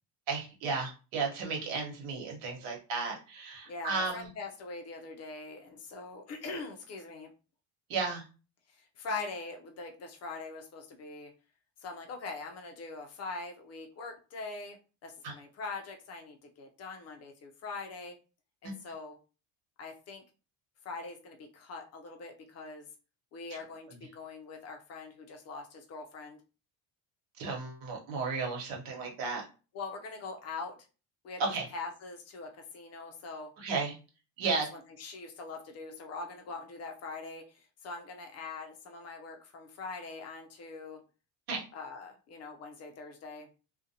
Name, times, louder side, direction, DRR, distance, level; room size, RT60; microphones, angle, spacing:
voice 1, 0.3-4.3 7.9-8.2 15.2-15.3 27.4-29.4 31.5-31.6 33.6-33.9 34.4-34.7 41.5-41.6, right 4 dB, 80° right, 0 dB, 1.2 m, -34 dB
voice 2, 3.7-7.3 8.7-11.3 11.8-14.8 15.0-18.2 18.6-19.2 19.8-20.2 20.8-22.9 23.3-26.4 29.7-30.8 31.2-31.4 31.7-33.5 34.4-41.0 41.7-43.5, left 3 dB, 40° left, 3 dB, 0.4 m, -42 dB
2.5 x 2.1 x 2.7 m, 0.34 s
cardioid pair, 150°, 44 cm